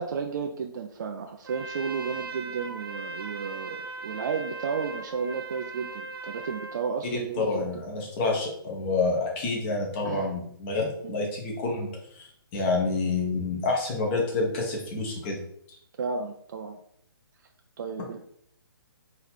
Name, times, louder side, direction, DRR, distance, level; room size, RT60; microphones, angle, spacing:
voice 1, 0.0-7.8 10.0-10.3 11.0-11.1 16.0-16.8 17.8-18.2, right 5 dB, 55° right, 4 dB, 0.4 m, -33 dB
Trumpet, 1.4-6.9, right 3 dB, 85° right, 0.9 m, -38 dB
voice 2, 7.1-11.9 12.5-15.4, left 3 dB, 30° left, -1 dB, 1.3 m, -28 dB
4.1 x 3.0 x 4.2 m, 0.69 s
hypercardioid pair, 145°, 12 cm